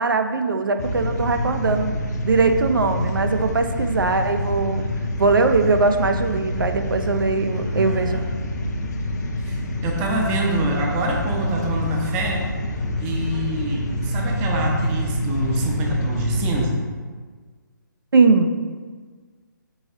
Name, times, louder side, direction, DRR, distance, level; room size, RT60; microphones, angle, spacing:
voice 1, 0.0-1.9 2.2-4.8 5.2-8.2 18.1-18.5, right 4 dB, 80° right, 7 dB, 0.4 m, -20 dB
sound 1, 0.8-16.6, left 1 dB, 55° left, 0.5 m, -26 dB
voice 2, 7.5-8.3 9.5-12.4 13.0-16.8, right 1 dB, 15° right, 0 dB, 0.4 m, -26 dB
4.7 x 3.8 x 2.6 m, 1.5 s
figure-of-eight pair, 145°, 11 cm